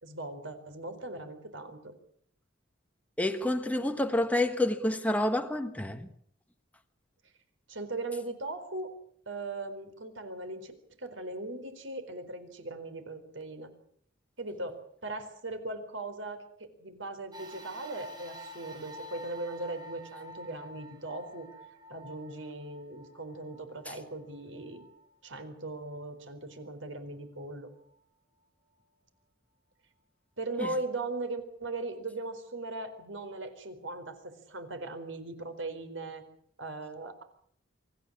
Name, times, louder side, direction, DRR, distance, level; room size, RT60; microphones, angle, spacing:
voice 1, 0.0-1.9 7.7-9.0 9.3-10.7 11.0-13.7 14.4-21.5 21.9-24.8 25.2-27.7 30.4-36.2 36.6-37.2, right 2 dB, 75° right, 4.4 m, -39 dB
voice 2, 3.2-6.1, left 1 dB, 10° left, 1.3 m, -28 dB
sound 1, 17.3-25.9 26.5-26.6 27.7-27.8, equal, 20° right, 7.4 m, -49 dB
25.0 x 14.5 x 9.8 m
head